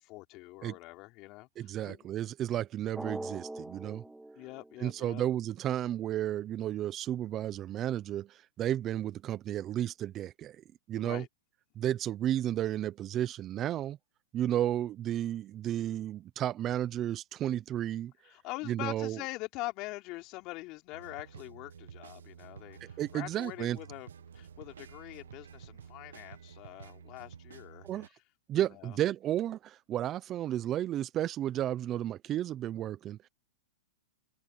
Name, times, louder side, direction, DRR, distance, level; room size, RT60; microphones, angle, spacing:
voice 1, 0.0-2.0 4.4-5.2 11.0-11.3 18.2-24.1 24.3-27.9 28.5-29.0, left 21 dB, 40° left, 3.9 m, -43 dB
voice 2, 1.6-4.0 4.8-10.6 10.9-11.2 11.8-14.0 14.3-18.1 18.7-19.2 23.0-23.8 27.8-28.1 28.5-33.3, right 12 dB, 30° right, 0.8 m, -33 dB
Drum, 2.9-5.5, right 2 dB, 5° right, 2.1 m, -43 dB
sound 1, 20.9-28.1, right 7 dB, 85° right, 1.2 m, -51 dB
hypercardioid pair, 130°, 0 cm